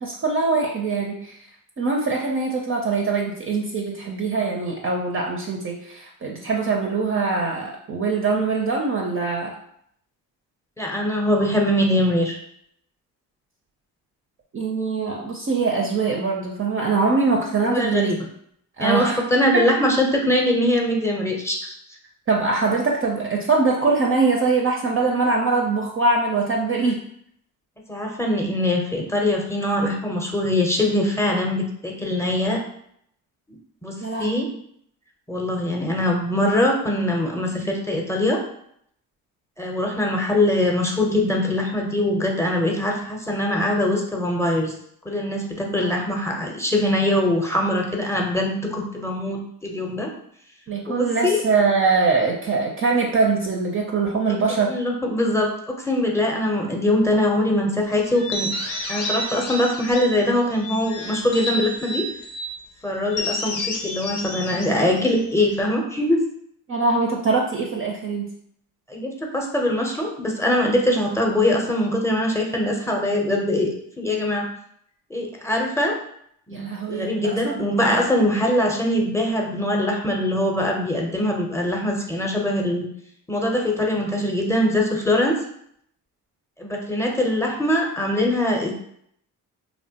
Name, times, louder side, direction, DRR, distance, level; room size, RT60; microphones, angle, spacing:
voice 1, 0.0-1.4 1.8-9.5 14.5-18.1 18.8-19.2 19.5-19.7 22.3-27.0 34.0-34.5 45.8-45.9 50.7-54.7 66.7-68.3 76.5-77.6 77.9-78.0, right 4 dB, 30° right, -1 dB, 0.5 m, -23 dB
voice 2, 10.8-12.4 17.7-18.2 18.8-21.7 27.9-32.6 33.5-34.5 35.3-38.4 39.6-44.7 45.0-50.1 50.9-51.4 54.6-58.5 58.9-62.1 62.8-66.2 68.9-74.5 75.1-76.0 76.5-82.9 83.3-85.4 86.6-88.7, left 1 dB, 5° left, 0 dB, 0.7 m, -22 dB
sound 1, 58.1-60.2 60.6-62.5 63.1-65.6, left 1 dB, 85° left, 0.6 m, -30 dB
3.0 x 2.1 x 2.8 m, 0.70 s
supercardioid pair, 60°, 41 cm